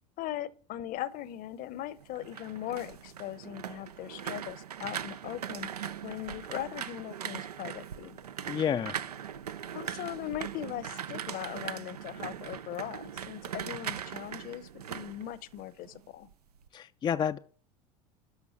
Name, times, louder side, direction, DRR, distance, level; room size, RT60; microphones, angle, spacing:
voice 1, 0.2-8.2 9.7-16.3, left 13 dB, 45° left, 0.8 m, -39 dB
sound 1, 2.0-16.0 16.3-16.7, right 9 dB, 85° right, 0.5 m, -40 dB
voice 2, 8.5-9.0 16.7-17.4, left 8 dB, 25° left, 0.4 m, -29 dB
12.5 x 5.2 x 5.9 m
hypercardioid pair, 75°, 19 cm